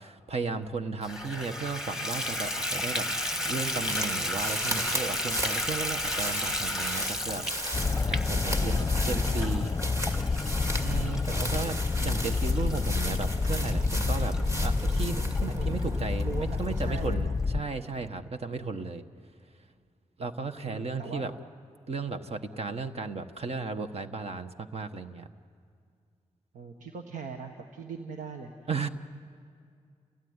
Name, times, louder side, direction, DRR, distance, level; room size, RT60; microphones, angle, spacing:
voice 1, 0.0-7.8 8.1-8.8 9.1-9.7 10.8-19.0 20.2-21.3 21.9-25.3 28.7-28.9, right 4 dB, 55° right, 8 dB, 1.2 m, -35 dB
Water tap faucet / Bathtub (filling or washing), 1.0-15.4 16.0-16.1 16.6-16.7 17.0-17.1, left 1 dB, 5° right, 1.5 m, -34 dB
sound 1, 3.9-17.2, equal, 25° right, 2.3 m, -35 dB
sound 2, 7.7-17.6, left 4 dB, 25° left, 0.8 m, -29 dB
voice 2, 8.4-9.5 15.4-17.4 18.6-18.7 20.6-21.3 24.0-24.1 26.5-28.9, right 5 dB, 85° right, 4 dB, 1.4 m, -41 dB
29.5 x 17.0 x 9.6 m, 2.3 s
cardioid pair, 70°, 13 cm